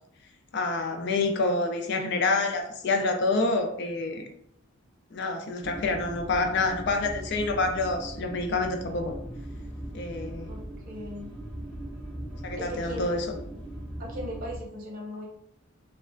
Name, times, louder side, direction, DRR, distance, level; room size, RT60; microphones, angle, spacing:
voice 1, 0.5-4.3 5.1-9.1 9.9-10.5 12.4-13.2, left 3 dB, 50° left, 4 dB, 0.4 m, -27 dB
sound 1, 5.6-14.6, right 1 dB, 5° left, 0.6 m, -39 dB
voice 2, 10.5-11.4 12.5-13.1 14.0-15.2, equal, 40° right, -2 dB, 0.8 m, -38 dB
3.1 x 2.1 x 2.5 m, 0.72 s
head